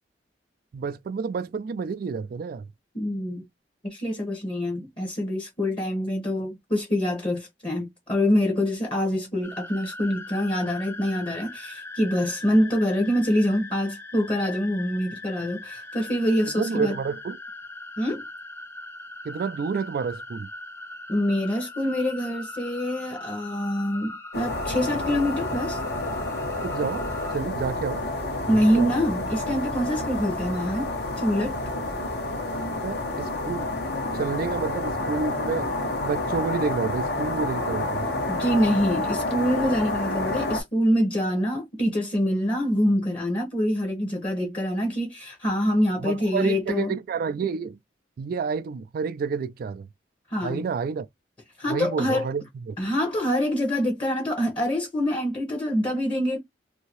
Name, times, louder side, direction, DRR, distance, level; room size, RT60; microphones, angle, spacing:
voice 1, 0.7-2.7 16.6-17.4 19.2-20.5 26.6-27.1 27.3-28.0 28.5-28.9 32.8-33.7 34.1-35.7 36.0-38.1 46.0-47.8 48.2-49.9 50.4-51.1 51.7-52.8, right 5 dB, 55° right, 0.3 m, -29 dB
voice 2, 2.9-3.4 3.8-16.9 18.0-18.2 21.1-25.8 28.5-30.9 31.2-31.6 38.3-46.9 50.3-50.6 51.6-52.3 52.8-56.4, equal, 30° left, 1.0 m, -25 dB
sound 1, 9.4-27.4, left 2 dB, 15° left, 0.5 m, -40 dB
sound 2, 24.3-40.6, left 2 dB, 65° left, 1.0 m, -29 dB
2.7 x 2.7 x 3.0 m
head